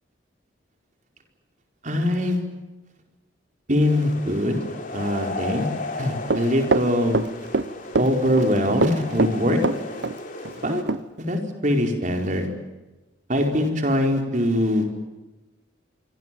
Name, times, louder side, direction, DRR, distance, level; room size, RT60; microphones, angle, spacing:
voice 1, 1.8-2.4 3.7-4.6 4.9-5.7 6.0-7.2 8.0-9.6 10.6-10.8 11.2-12.5 13.3-15.0, left 1 dB, 40° right, 4 dB, 4.5 m, -22 dB
sound 1, 3.8-10.8, left 2 dB, 45° left, 4.0 m, -35 dB
Run, 6.3-7.7 7.9-8.5 8.8-10.2 10.4-10.5 10.9-11.0, right 3 dB, 70° right, 0.8 m, -23 dB
26.0 x 25.5 x 7.7 m, 1.1 s
head